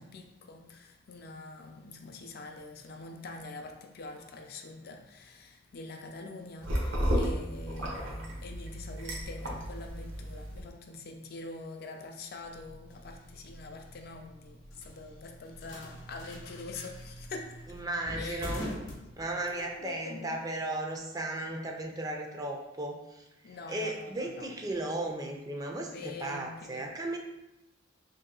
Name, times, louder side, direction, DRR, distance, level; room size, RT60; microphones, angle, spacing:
voice 1, 0.0-17.8 18.2-18.7 19.3-20.4 23.4-24.5 25.9-27.0, left 3 dB, 55° left, 4 dB, 0.4 m, -45 dB
sound 1, 6.6-10.6, equal, 75° right, 0.8 m, -33 dB
sound 2, 12.4-19.7, left 1 dB, 75° left, 0.7 m, -44 dB
voice 2, 17.7-18.6 19.2-27.2, right 2 dB, 20° right, 1 dB, 0.4 m, -36 dB
3.0 x 2.8 x 3.8 m, 0.93 s
head